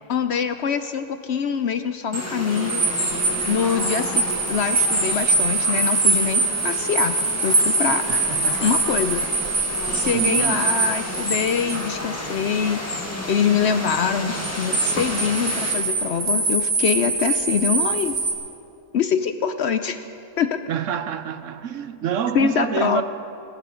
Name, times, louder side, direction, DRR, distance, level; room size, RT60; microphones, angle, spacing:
voice 1, 0.1-2.8 3.5-7.2 7.4-8.0 8.6-9.2 9.9-12.8 13.3-18.1 18.9-20.0 20.4-20.6 22.3-23.0, left 7 dB, 65° left, 0.7 m, -24 dB
sound 1, 2.1-15.7, left 1 dB, 10° left, 1.6 m, -31 dB
sound 2, 2.5-11.8 14.3-18.3, right 3 dB, 90° right, 2.8 m, -23 dB
voice 2, 8.1-8.7 10.1-10.6 20.7-23.0, right 8 dB, 70° right, 1.0 m, -27 dB
24.5 x 14.5 x 3.8 m
omnidirectional pair, 1.5 m